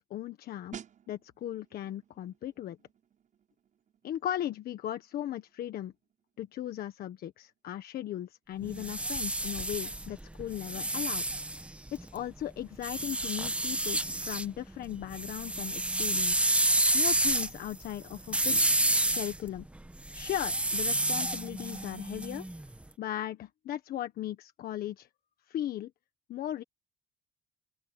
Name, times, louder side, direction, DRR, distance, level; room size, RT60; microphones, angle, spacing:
voice 1, 0.1-0.8 1.1-2.8 4.0-5.9 6.4-11.2 11.9-19.6 20.1-22.4 23.0-25.1 25.5-25.9 26.3-26.6, left 12 dB, 65° left, 1.4 m, -37 dB
sound 1, 0.7-11.2 11.5-11.8, right 9 dB, 50° right, 7.1 m, -55 dB
sound 2, 8.6-12.2 12.8-14.5 14.8-22.7, right 1 dB, 5° right, 1.1 m, -30 dB
open air
cardioid pair, 110°, 17 cm